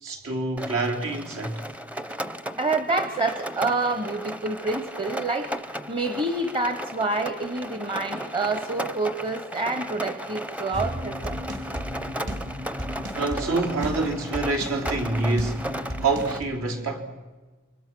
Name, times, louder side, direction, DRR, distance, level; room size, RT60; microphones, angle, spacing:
voice 1, 0.0-1.6 13.1-15.7 16.0-17.0, right 3 dB, 80° right, 3.7 m, -26 dB
Rain, 0.6-16.4, equal, 5° right, 0.7 m, -35 dB
voice 2, 2.6-11.4, right 3 dB, 25° right, 1.0 m, -27 dB
sound 1, 10.7-16.4, equal, 60° right, 4.5 m, -34 dB
28.5 x 24.0 x 6.1 m
head